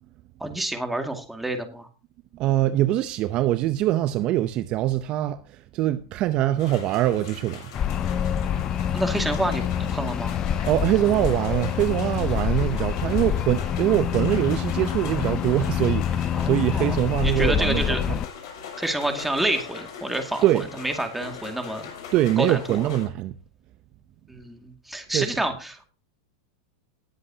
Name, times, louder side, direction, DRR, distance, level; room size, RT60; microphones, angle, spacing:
voice 1, 0.4-1.9 8.9-10.4 16.3-17.0 17.2-18.0 18.8-20.5 20.8-21.9 22.4-22.8 24.3-25.8, right 1 dB, 5° right, 2.2 m, -28 dB
voice 2, 2.3-7.7 10.6-18.2 20.4-20.7 22.1-23.3 25.1-25.3, right 14 dB, 45° right, 0.7 m, -23 dB
sound 1, 6.6-23.1, left 6 dB, 60° left, 6.5 m, -42 dB
sound 2, 7.7-18.3, left 9 dB, 30° left, 0.5 m, -26 dB
19.5 x 7.8 x 2.8 m
hypercardioid pair, 115°, 2 cm